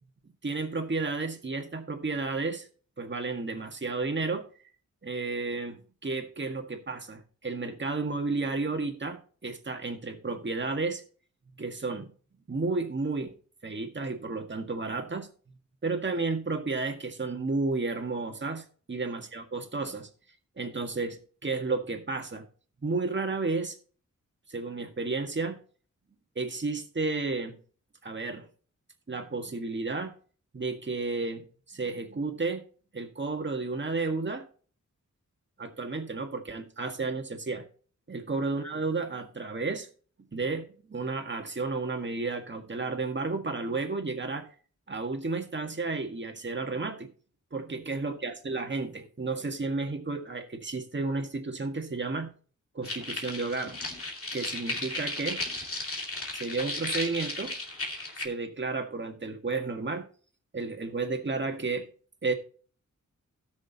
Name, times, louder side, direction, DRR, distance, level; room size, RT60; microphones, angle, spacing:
voice 1, 0.4-2.7 3.0-4.5 5.0-11.0 11.6-12.1 12.5-13.3 13.6-15.3 15.8-20.1 20.6-22.5 22.8-23.8 24.5-25.6 26.4-27.6 28.0-28.5 29.1-30.1 30.5-32.6 32.9-34.5 35.6-37.6 38.1-39.9 40.3-44.5 44.9-47.1 47.5-52.3 52.7-53.8 54.3-55.4 56.3-57.5 58.2-60.1 60.5-61.9 62.2-62.3, right 3 dB, 35° right, 1.8 m, -32 dB
sound 1, 52.8-58.2, left 2 dB, 45° left, 2.6 m, -35 dB
17.5 x 6.4 x 2.9 m
wide cardioid pair, 95°, 31 cm